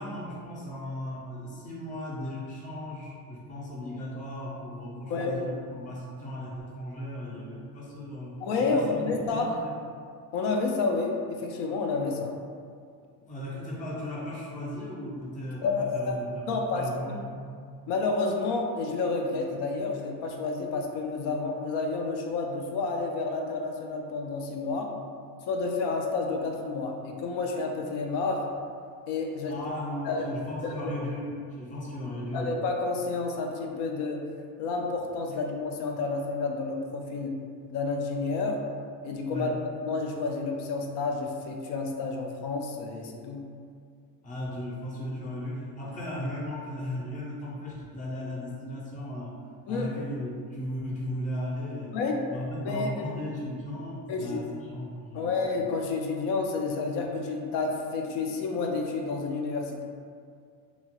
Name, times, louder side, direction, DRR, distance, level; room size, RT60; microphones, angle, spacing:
voice 1, 0.0-9.7 13.3-17.4 29.5-32.5 39.3-39.5 44.2-49.4 49.7-52.0 52.3-55.3, left 1 dB, 20° left, -5 dB, 0.4 m, -36 dB
voice 2, 5.1-5.4 8.4-9.5 10.3-12.4 15.6-16.1 16.5-17.2 17.9-24.9 25.5-28.5 29.1-29.6 30.1-30.2 30.6-30.9 32.3-34.3 34.6-37.4 37.7-38.7 39.0-39.5 39.8-43.5 49.7-49.9 51.9-52.2 52.6-53.1 54.1-54.4 55.1-59.8, left 3 dB, 85° left, 2 dB, 0.5 m, -30 dB
2.9 x 2.3 x 2.9 m, 2.2 s
cardioid pair, 160°, 39 cm